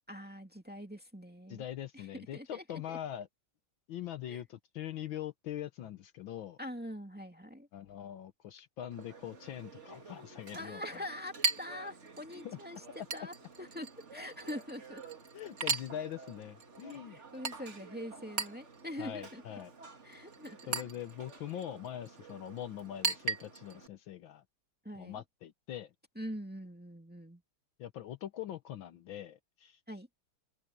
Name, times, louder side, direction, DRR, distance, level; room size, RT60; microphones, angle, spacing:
voice 1, 0.1-1.6 1.9-3.0 4.3-4.4 6.6-7.7 10.5-12.8 13.1-15.0 17.1-19.4 20.0-20.9 24.8-25.2 26.2-27.4 29.9-30.1, left 1 dB, 5° right, 2.2 m, -44 dB
voice 2, 1.5-3.3 3.9-6.6 7.7-11.1 12.4-12.6 13.0-13.1 15.3-17.2 19.0-19.7 20.7-24.4 24.9-25.9 27.8-29.8, left 11 dB, 70° left, 1.6 m, -42 dB
Chink clink, 8.9-23.9, right 4 dB, 35° right, 2.0 m, -41 dB
omnidirectional pair, 2.3 m